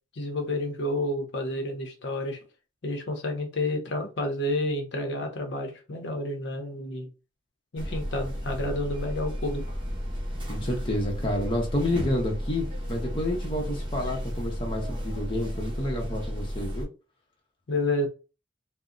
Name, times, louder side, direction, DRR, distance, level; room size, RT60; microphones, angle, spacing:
voice 1, 0.1-2.4 2.8-7.1 7.7-9.6 17.7-18.1, left 1 dB, 60° left, 0.7 m, -30 dB
sound 1, 7.8-16.9, equal, 25° right, 0.9 m, -33 dB
voice 2, 10.5-16.9, left 1 dB, 25° left, 0.8 m, -29 dB
2.7 x 2.1 x 3.7 m
head